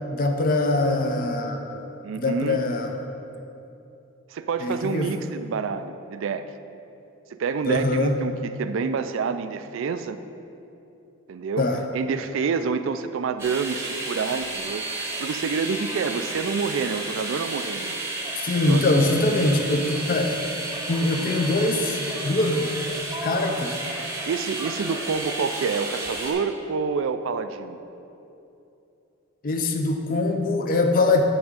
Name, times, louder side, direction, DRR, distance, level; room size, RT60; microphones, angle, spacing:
voice 1, 0.1-1.8 2.1-2.9 4.6-5.1 7.7-8.2 11.6-11.8 18.4-20.4 20.9-22.7 23.2-23.8 29.4-31.2, left 2 dB, 40° left, 4 dB, 0.5 m, -23 dB
voice 2, 2.0-2.6 4.3-6.4 7.3-10.2 11.3-11.6 11.9-18.0 18.7-18.8 24.2-27.8, right 5 dB, 65° right, 10 dB, 0.3 m, -28 dB
sound 1, 13.4-26.3, right 2 dB, 10° right, 0.8 m, -32 dB
8.7 x 3.5 x 6.5 m, 2.8 s
head